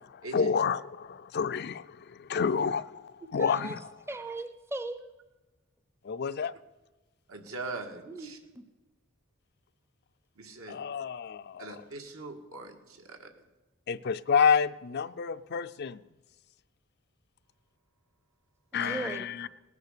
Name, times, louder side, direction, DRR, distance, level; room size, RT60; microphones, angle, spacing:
voice 1, 0.3-3.9 6.0-6.5 10.7-11.8 13.9-16.0 18.7-19.5, left 6 dB, 50° left, 13 dB, 0.4 m, -29 dB
voice 2, 3.4-3.7 4.1-5.1 8.1-8.3 8.6-8.7 18.8-19.3, right 2 dB, 10° right, 10 dB, 0.6 m, -37 dB
voice 3, 7.3-8.4 10.4-10.8 11.6-13.3 18.8-19.1, right 3 dB, 80° right, 3 dB, 1.9 m, -41 dB
18.5 x 9.6 x 6.7 m, 1.2 s
head